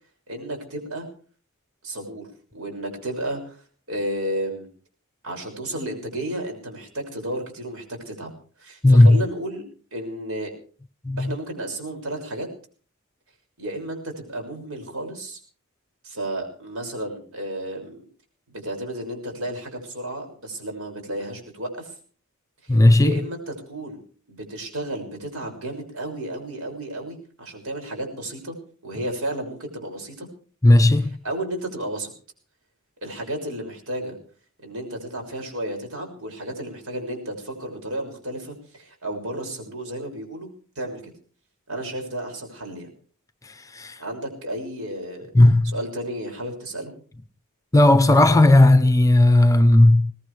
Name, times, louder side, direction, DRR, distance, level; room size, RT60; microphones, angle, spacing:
voice 1, 0.3-1.1 1.8-3.6 3.9-4.7 5.2-8.3 8.6-9.7 9.9-10.5 11.2-12.5 13.6-15.4 16.0-18.0 18.5-21.9 22.6-24.0 24.3-28.6 28.8-30.3 31.2-32.1 33.0-34.2 34.6-40.5 40.7-41.1 41.7-42.9 44.0-45.3 45.6-46.9, right 1 dB, 65° right, 6.3 m, -32 dB
voice 2, 8.8-9.2 11.0-11.3 22.7-23.2 30.6-31.2 43.7-44.0 45.3-45.7 47.7-50.1, left 1 dB, 15° left, 0.8 m, -14 dB
22.0 x 19.0 x 3.4 m
head